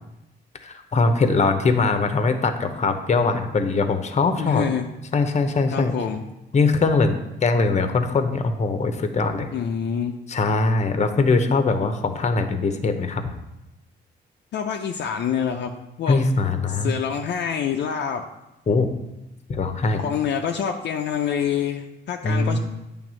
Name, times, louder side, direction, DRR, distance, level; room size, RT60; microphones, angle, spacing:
voice 1, 0.6-4.7 5.1-5.9 6.5-9.5 10.3-13.2 16.1-16.9 18.7-18.9 19.5-20.0 22.2-22.6, left 3 dB, 35° left, 8 dB, 0.8 m, -21 dB
voice 2, 4.4-4.9 5.7-6.2 9.5-10.2 14.5-15.7 16.0-16.2 16.8-18.3 20.0-22.6, left 8 dB, 60° left, 3 dB, 0.5 m, -26 dB
8.7 x 3.5 x 6.2 m, 0.94 s
cardioid pair, 90°, 20 cm